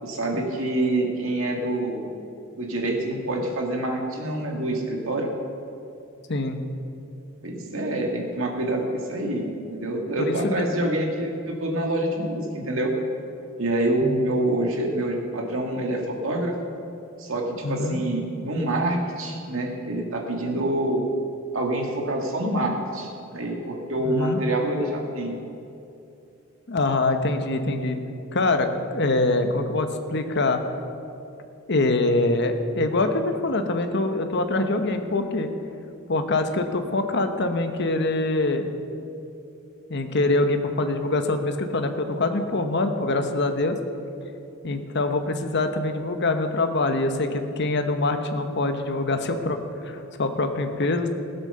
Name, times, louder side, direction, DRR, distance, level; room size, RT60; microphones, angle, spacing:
voice 1, 0.0-2.1 2.6-5.3 7.4-12.9 13.6-16.5 17.2-21.0 21.5-25.3, right 1 dB, 75° right, 1 dB, 2.1 m, -26 dB
voice 2, 10.2-10.7 14.0-14.2 17.6-18.0 24.0-24.4 26.7-28.0 28.3-30.6 31.7-35.5 36.1-38.7 39.9-43.8 44.6-51.1, left 2 dB, 55° left, 7 dB, 1.0 m, -24 dB
16.5 x 8.1 x 6.8 m, 2.8 s
head